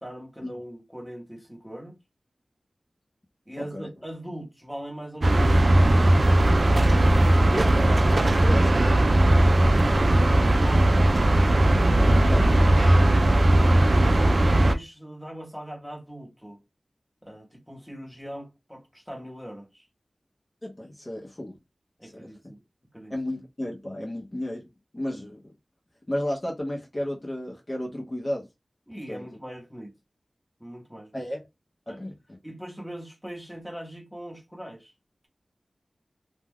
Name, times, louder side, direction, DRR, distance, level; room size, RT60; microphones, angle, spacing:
voice 1, 0.0-2.0 3.5-6.6 9.5-11.3 11.9-12.5 13.6-16.6 17.2-19.9 22.0-22.6 22.9-23.1 28.9-29.9 30.6-31.2 31.9-32.0 32.4-34.9, equal, ahead, 0.9 m, -41 dB
voice 2, 3.6-3.9 7.5-8.8 9.6-10.1 12.3-12.4 20.6-21.6 22.0-22.3 23.1-24.7 24.9-25.5 26.1-28.5 29.1-29.2 31.1-31.4 31.9-32.2, left 1 dB, 30° left, 0.7 m, -33 dB
sound 1, 5.2-14.8, right 1 dB, 55° right, 0.3 m, -18 dB
2.3 x 2.1 x 3.4 m
wide cardioid pair, 75°, 0 cm